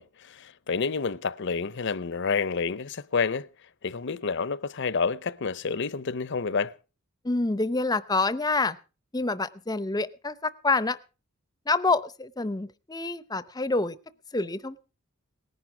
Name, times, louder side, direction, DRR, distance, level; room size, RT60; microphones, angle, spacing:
voice 1, 0.0-3.5 3.8-6.7, left 5 dB, 60° left, 0.7 m, -29 dB
voice 2, 7.2-8.8 9.1-11.0 11.7-13.9 14.3-14.9, left 3 dB, 20° left, 0.6 m, -27 dB
18.5 x 10.5 x 4.9 m
head